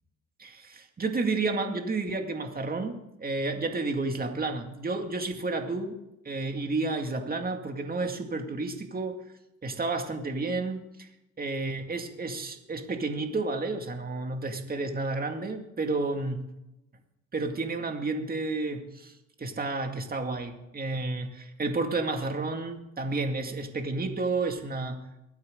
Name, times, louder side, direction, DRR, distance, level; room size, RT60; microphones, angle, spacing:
voice 1, 0.4-6.0 6.2-9.2 9.6-11.1 11.4-16.4 17.3-25.0, right 3 dB, 30° right, 5 dB, 2.2 m, -31 dB
23.0 x 9.6 x 3.8 m, 0.89 s
cardioid pair, 90°, 30 cm